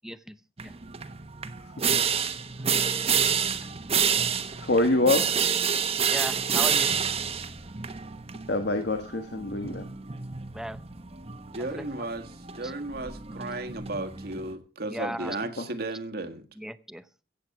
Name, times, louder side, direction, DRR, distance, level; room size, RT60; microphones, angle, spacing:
voice 1, 0.0-0.4 0.6-0.7 6.0-6.9 10.5-10.8 11.6-12.0 12.6-12.7 14.9-15.4 16.6-17.0, equal, 5° right, 0.7 m, -36 dB
sound 1, 0.6-14.5, right 7 dB, 35° right, 1.1 m, -29 dB
voice 2, 1.6-2.0 4.5-5.3 8.5-9.8 15.6-15.7, left 2 dB, 70° left, 1.4 m, -26 dB
voice 3, 11.5-16.4, right 2 dB, 60° right, 1.6 m, -34 dB
16.0 x 8.0 x 5.9 m
head